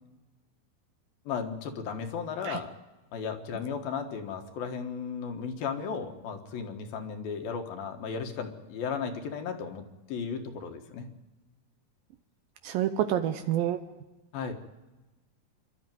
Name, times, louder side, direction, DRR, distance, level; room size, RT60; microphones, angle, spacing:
voice 1, 1.3-2.7 3.1-11.1 14.3-14.5, left 6 dB, 75° left, 6 dB, 3.3 m, -35 dB
voice 2, 12.6-13.8, right 11 dB, 75° right, 9 dB, 2.5 m, -28 dB
26.5 x 12.5 x 9.4 m, 1.1 s
omnidirectional pair, 4.3 m